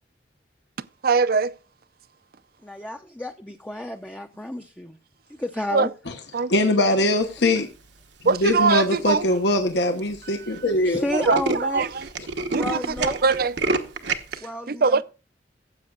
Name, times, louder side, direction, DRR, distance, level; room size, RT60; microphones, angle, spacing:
voice 1, 1.0-1.5 5.7-5.9 6.3-6.5 8.2-9.3 10.4-10.6 11.1-12.1 12.5-13.6 14.3-14.4 14.7-15.0, right 4 dB, 55° right, 0.6 m, -22 dB
voice 2, 2.6-5.0 5.4-5.9 10.8-11.8 12.5-13.2 14.4-15.0, left 1 dB, 10° left, 0.6 m, -31 dB
voice 3, 6.5-7.7 8.3-11.0, left 1 dB, 75° left, 1.2 m, -21 dB
Tools, 8.3-8.7 9.3-9.4 9.7-9.8 10.0-10.2 10.5-10.6 10.9-14.4, right 3 dB, 80° right, 1.1 m, -28 dB
15.0 x 8.0 x 2.4 m
head